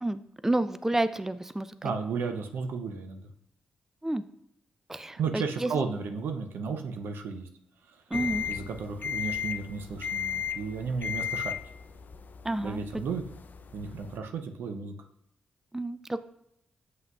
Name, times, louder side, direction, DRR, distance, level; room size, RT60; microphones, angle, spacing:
voice 1, 0.0-1.7 4.0-4.2 4.9-5.7 8.1-8.5 12.4-12.8 15.7-16.2, right 2 dB, 10° right, 13 dB, 0.4 m, -30 dB
voice 2, 1.8-3.2 5.2-7.5 8.5-11.5 12.6-13.2 13.7-14.9, right 5 dB, 75° right, 6 dB, 0.6 m, -33 dB
sound 1, 8.1-14.2, left 8 dB, 55° left, 0.4 m, -35 dB
7.7 x 5.6 x 2.4 m, 0.77 s
hypercardioid pair, 40°, 4 cm